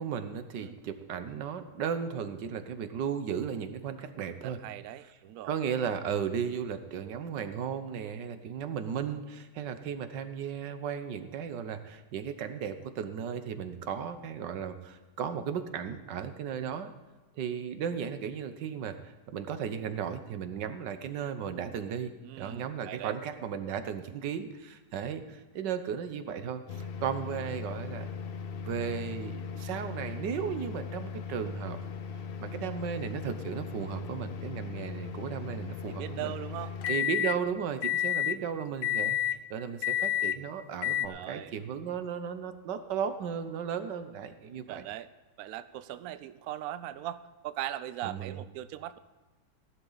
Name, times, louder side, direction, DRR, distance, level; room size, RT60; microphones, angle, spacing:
voice 1, 0.0-4.6 5.4-16.9 17.4-28.1 28.6-31.8 32.4-36.3 36.9-44.8 48.0-48.4, right 7 dB, 85° right, 10 dB, 1.6 m, -35 dB
voice 2, 4.4-5.5 22.2-23.2 35.9-36.9 41.1-41.5 44.7-45.1 45.4-49.0, right 13 dB, 70° right, 14 dB, 0.9 m, -40 dB
sound 1, 26.7-37.4 37.8-38.4 38.8-39.4 39.8-40.4 40.8-41.1, left 9 dB, 80° left, 0.5 m, -34 dB
16.0 x 11.5 x 4.0 m, 1.2 s
omnidirectional pair, 1.8 m